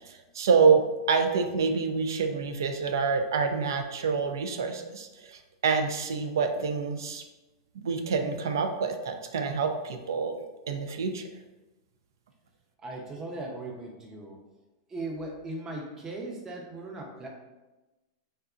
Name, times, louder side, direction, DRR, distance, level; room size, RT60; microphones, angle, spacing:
voice 1, 0.0-7.2 7.8-10.3 10.7-11.2, right 5 dB, 80° right, 6 dB, 0.3 m, -27 dB
voice 2, 12.8-14.4 14.9-17.3, right 2 dB, 25° right, 0 dB, 0.5 m, -38 dB
2.7 x 2.1 x 2.4 m, 1.1 s
hypercardioid pair, 120°, 2 cm